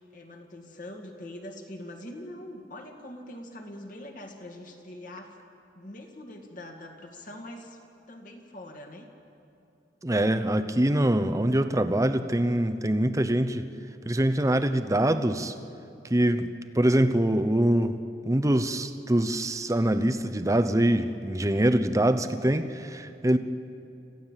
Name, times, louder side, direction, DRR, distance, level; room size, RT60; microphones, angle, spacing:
voice 1, 0.1-5.4 5.7-7.8 8.1-9.1 16.2-16.4, left 1 dB, 45° left, 2 dB, 2.2 m, -43 dB
voice 2, 10.0-13.7 14.1-15.5 16.1-16.5 16.7-18.0 18.2-23.4, right 1 dB, 20° right, 10 dB, 0.8 m, -24 dB
26.5 x 15.5 x 7.4 m, 2.7 s
head